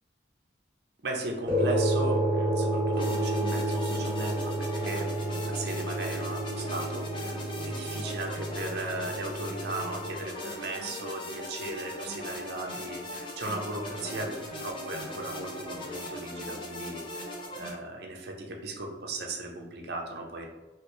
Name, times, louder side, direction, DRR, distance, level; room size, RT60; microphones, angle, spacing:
voice 1, 1.0-20.5, right 2 dB, 60° right, 1 dB, 0.6 m, -37 dB
sound 1, 1.5-10.2, right 1 dB, 25° right, 1.2 m, -30 dB
sound 2, 2.9-17.7, left 1 dB, 25° left, 0.6 m, -39 dB
3.3 x 2.6 x 3.0 m, 1.2 s
head